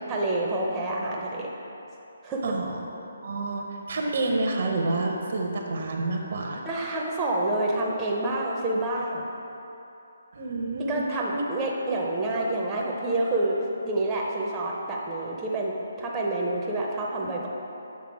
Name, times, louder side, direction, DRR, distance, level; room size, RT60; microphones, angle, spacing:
voice 1, 0.1-1.5 2.2-2.5 6.6-9.2 10.9-13.6 13.8-17.5, right 2 dB, 20° right, -3 dB, 0.7 m, -28 dB
voice 2, 2.4-2.8 3.2-6.6 10.3-11.0 11.3-11.4, right 2 dB, 55° right, 1 dB, 0.8 m, -28 dB
7.6 x 3.6 x 4.8 m, 2.9 s
figure-of-eight pair, 145°, 0 cm